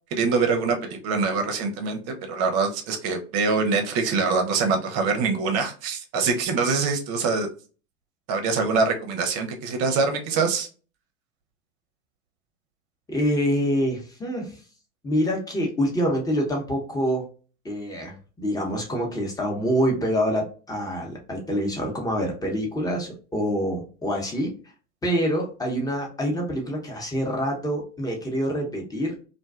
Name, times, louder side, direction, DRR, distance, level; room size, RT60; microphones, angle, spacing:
voice 1, 0.1-7.5 8.3-10.7, right 4 dB, 40° right, 5 dB, 0.7 m, -24 dB
voice 2, 13.1-14.6 15.0-17.3 17.6-24.5 25.0-29.1, equal, 10° left, 0 dB, 0.8 m, -26 dB
2.5 x 2.2 x 2.3 m, 0.37 s
hypercardioid pair, 95°, 39 cm